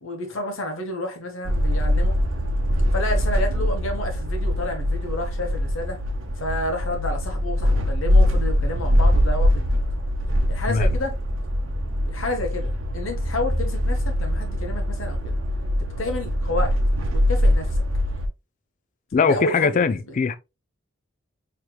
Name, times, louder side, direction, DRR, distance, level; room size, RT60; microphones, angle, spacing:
voice 1, 0.0-2.2 2.9-6.0 6.4-9.8 10.5-11.1 12.1-15.4 15.8-16.8 17.1-17.9 19.2-20.2, left 1 dB, 80° left, 1.2 m, -30 dB
sound 1, 1.4-18.3, equal, 75° right, 0.8 m, -22 dB
voice 2, 19.1-20.4, left 5 dB, 40° left, 0.4 m, -21 dB
4.7 x 3.2 x 2.3 m
head